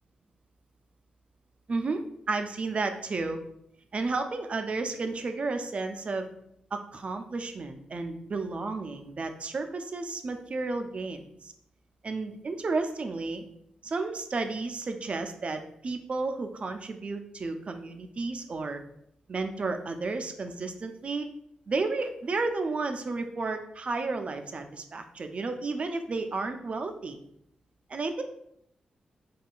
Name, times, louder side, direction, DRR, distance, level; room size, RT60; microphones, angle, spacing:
voice 1, 1.7-3.4 3.9-6.3 6.7-11.5 12.0-13.4 13.8-18.8 19.3-21.3 21.7-27.2 27.9-28.2, right 3 dB, 50° right, 6 dB, 0.4 m, -32 dB
3.6 x 2.2 x 2.4 m, 0.72 s
cardioid pair, 60°, 3 cm